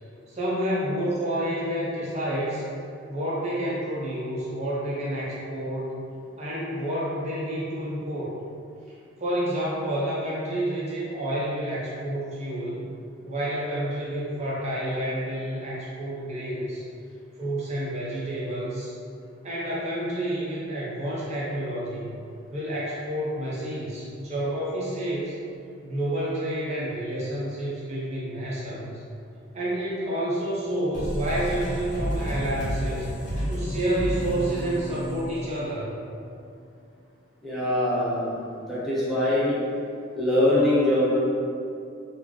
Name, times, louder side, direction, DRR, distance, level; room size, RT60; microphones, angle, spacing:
voice 1, 0.3-2.6 3.1-6.0 6.4-8.4 9.2-12.9 13.2-16.8 17.4-19.0 19.4-22.2 22.5-25.3 25.8-29.0 29.5-33.1 33.5-35.9, right 1 dB, 35° right, -7 dB, 0.5 m, -29 dB
sound 1, 30.9-36.2, equal, 40° left, 1.1 m, -31 dB
voice 2, 37.4-38.4 38.7-39.6 40.1-41.2, left 1 dB, ahead, -10 dB, 0.7 m, -23 dB
3.3 x 2.3 x 3.6 m, 2.4 s
head